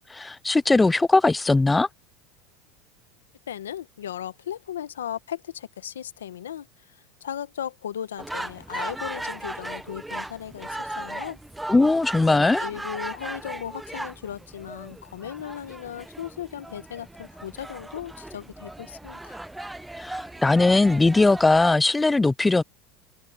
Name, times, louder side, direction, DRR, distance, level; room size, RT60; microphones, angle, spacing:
voice 1, 0.1-1.9 11.7-12.6 20.0-22.6, left 3 dB, 10° left, 0.4 m, -19 dB
voice 2, 3.5-6.7 7.2-11.4 12.2-19.4, left 10 dB, 90° left, 1.1 m, -36 dB
sound 1, 8.2-21.7, right 1 dB, 5° right, 1.0 m, -37 dB
hypercardioid pair, 90°, 0 cm